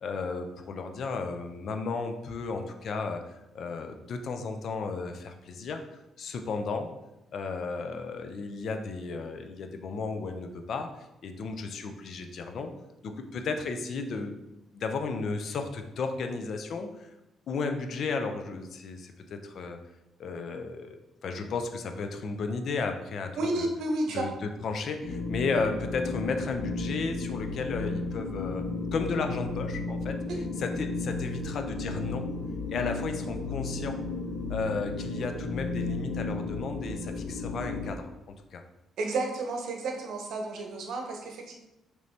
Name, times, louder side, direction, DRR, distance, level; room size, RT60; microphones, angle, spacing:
voice 1, 0.0-6.9 7.3-12.7 13.0-14.4 14.7-17.1 17.5-19.8 20.2-23.7 24.1-28.7 28.9-30.2 30.6-32.3 32.7-34.0 34.5-38.6, left 4 dB, 60° left, 6 dB, 0.5 m, -34 dB
voice 2, 23.4-24.2 39.0-41.5, right 2 dB, 80° right, 2 dB, 0.8 m, -31 dB
sound 1, 25.0-37.9, left 3 dB, 75° left, 1.3 m, -34 dB
5.2 x 3.1 x 2.8 m, 0.93 s
cardioid pair, 90°, 0 cm